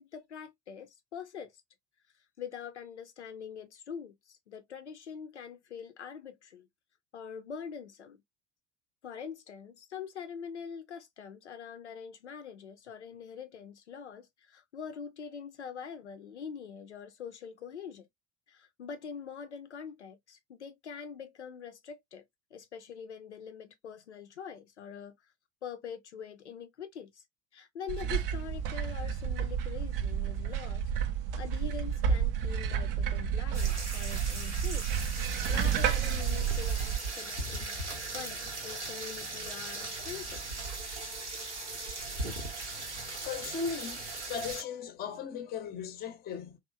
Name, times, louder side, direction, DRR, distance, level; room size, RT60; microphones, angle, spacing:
voice 1, 0.0-1.5 2.4-6.7 7.1-8.2 9.0-18.1 18.5-22.2 22.5-25.1 25.6-27.2 27.5-30.8 31.4-34.9 35.2-37.8 38.1-40.7, left 7 dB, 85° left, 0.5 m, -44 dB
sound 1, 27.9-37.0, right 8 dB, 55° right, 0.5 m, -31 dB
sound 2, 33.5-44.6, right 2 dB, 85° right, 0.8 m, -38 dB
voice 2, 43.2-44.0 44.3-46.6, left 6 dB, 30° left, 0.6 m, -37 dB
2.9 x 2.0 x 2.3 m
figure-of-eight pair, 70°, 34 cm